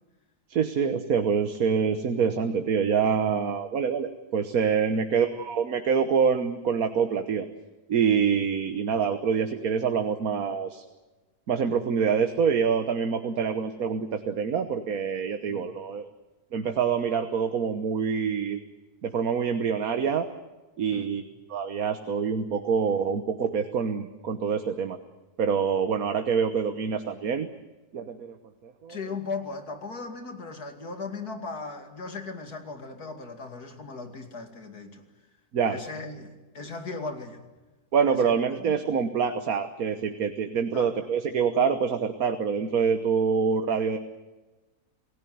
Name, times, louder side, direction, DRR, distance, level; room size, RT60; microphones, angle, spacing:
voice 1, 0.5-7.5 7.9-10.8 11.5-16.1 16.5-18.6 19.0-20.3 20.8-21.2 21.5-25.0 25.4-27.5 27.9-28.4 28.6-29.0 35.5-35.8 37.9-44.0, right 6 dB, 65° right, 8 dB, 1.6 m, -26 dB
voice 2, 28.9-35.0 35.7-37.5 38.1-38.8 40.7-41.0, left 4 dB, 80° left, 5 dB, 3.1 m, -38 dB
28.0 x 17.0 x 9.4 m, 1.2 s
omnidirectional pair, 1.6 m